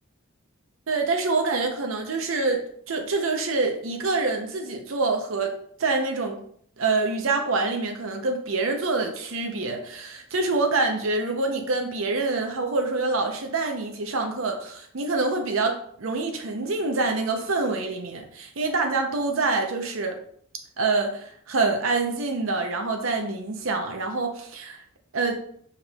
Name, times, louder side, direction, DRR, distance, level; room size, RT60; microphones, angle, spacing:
voice 1, 0.9-5.5 5.8-6.4 6.8-20.2 20.8-24.8 25.1-25.4, right 3 dB, 70° right, 3 dB, 0.6 m, -26 dB
5.0 x 4.6 x 2.3 m, 0.62 s
head